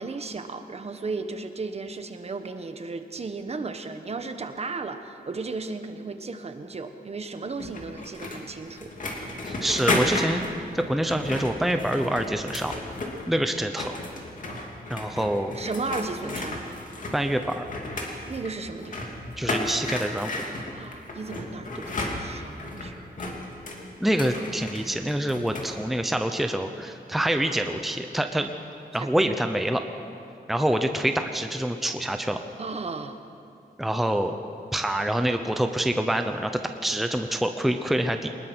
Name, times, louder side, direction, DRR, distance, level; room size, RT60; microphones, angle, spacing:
voice 1, 0.0-8.9 15.5-16.6 18.3-19.1 20.7-23.3 29.0-29.3 32.6-33.2, right 3 dB, 40° right, 8 dB, 1.2 m, -35 dB
sound 1, 7.6-13.4 13.6-25.7, left 2 dB, 50° left, 2.8 m, -33 dB
voice 2, 9.4-10.4 10.7-12.7 13.3-13.9 14.9-15.6 17.1-17.7 19.4-20.4 24.0-28.5 28.9-29.8 30.5-32.4 33.8-34.4 34.7-38.3, right 1 dB, ahead, 6 dB, 0.8 m, -26 dB
23.0 x 20.5 x 6.2 m, 2.6 s
wide cardioid pair, 160°, 16 cm